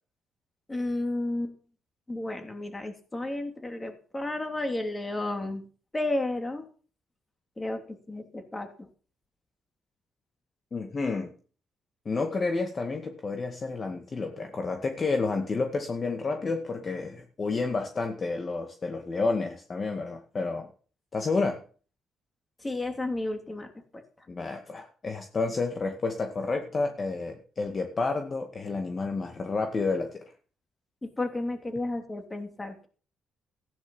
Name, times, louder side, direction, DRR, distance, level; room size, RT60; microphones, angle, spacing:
voice 1, 0.7-1.5 2.1-5.7 5.9-6.7 7.6-8.9 22.6-24.0 31.0-32.9, left 2 dB, 20° left, 5 dB, 3.2 m, -32 dB
voice 2, 10.7-11.3 12.1-20.7 21.1-21.6 24.3-30.2, left 3 dB, 35° left, 4 dB, 2.0 m, -30 dB
15.0 x 10.5 x 5.6 m, 0.41 s
cardioid pair, 90°, 0 cm